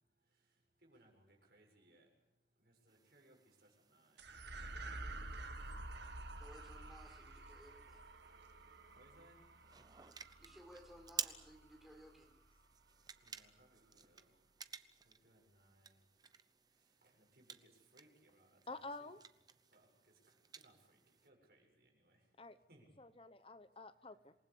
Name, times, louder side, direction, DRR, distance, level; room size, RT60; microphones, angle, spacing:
voice 1, 0.2-2.1 2.6-4.7 5.4-6.0 8.9-9.4 13.2-14.4 15.0-16.1 16.7-19.1 19.7-22.3 22.7-23.0, right 1 dB, 60° right, 2 dB, 7.2 m, -69 dB
sound 1, 2.9-21.3, right 7 dB, 25° right, 0.8 m, -53 dB
sound 2, 4.2-12.8, right 2 dB, 80° right, 1.7 m, -50 dB
voice 2, 6.4-8.0 10.4-12.3, equal, ahead, 1 dB, 4.8 m, -59 dB
voice 3, 18.7-19.2 22.4-22.6 23.0-24.3, left 3 dB, 30° left, 12 dB, 0.9 m, -50 dB
27.5 x 19.5 x 8.5 m, 0.87 s
head